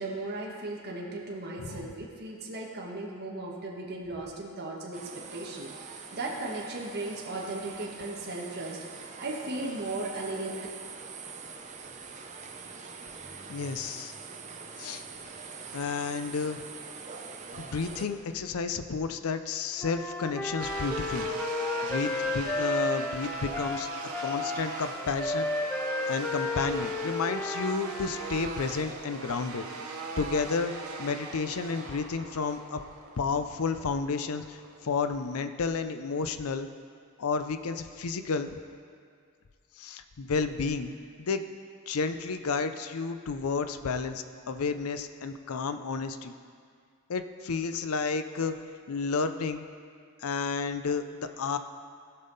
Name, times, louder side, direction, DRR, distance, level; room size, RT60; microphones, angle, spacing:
voice 1, 0.0-10.7, right 2 dB, 50° right, -3 dB, 1.3 m, -37 dB
sound 1, 4.9-18.1, right 5 dB, 35° right, 0.7 m, -44 dB
voice 2, 13.5-14.1 14.8-15.0 15.7-16.6 17.5-21.3 21.8-23.9 24.2-25.5 26.1-30.7 31.0-32.8 33.2-36.7 37.2-38.6 39.8-41.5 41.9-46.3 47.1-48.5 48.9-49.6 50.2-51.6, left 4 dB, 85° left, 9 dB, 0.5 m, -31 dB
Wind instrument woodwind instrument, 19.8-28.3, left 2 dB, 10° left, 0.5 m, -33 dB
sound 2, 20.6-35.5, right 3 dB, 85° right, 1.0 m, -40 dB
16.0 x 5.5 x 4.0 m, 2.1 s
head